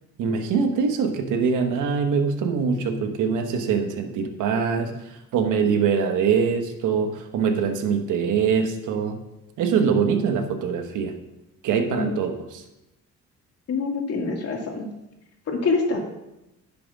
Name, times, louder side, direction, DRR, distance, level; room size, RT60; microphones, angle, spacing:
voice 1, 0.2-4.9 5.3-9.2 9.6-11.1 11.6-12.6, right 6 dB, 85° right, 6 dB, 1.3 m, -23 dB
voice 2, 13.7-14.9 15.5-16.0, left 3 dB, 55° left, 1 dB, 2.5 m, -25 dB
10.5 x 5.9 x 6.0 m, 0.92 s
cardioid pair, 90°, 30 cm